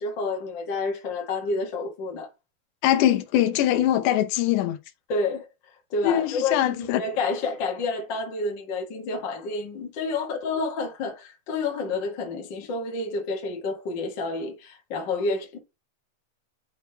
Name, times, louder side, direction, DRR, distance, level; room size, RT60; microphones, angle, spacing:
voice 1, 0.0-2.3 5.1-15.6, left 3 dB, 55° left, 1.3 m, -29 dB
voice 2, 2.8-4.8 6.0-7.0, left 12 dB, 75° left, 2.0 m, -22 dB
10.5 x 3.8 x 2.8 m
omnidirectional pair, 4.4 m